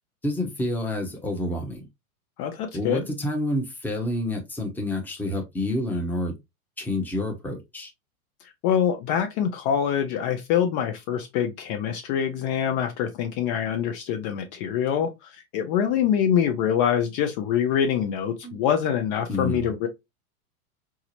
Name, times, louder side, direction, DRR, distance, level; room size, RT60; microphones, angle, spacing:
voice 1, 0.2-1.8 2.7-6.3 6.8-7.9 18.4-18.6 19.3-19.7, left 1 dB, 5° left, 0.8 m, -28 dB
voice 2, 2.4-3.0 8.6-19.9, left 8 dB, 40° left, 0.6 m, -25 dB
4.6 x 2.0 x 2.8 m
hypercardioid pair, 105°, 42 cm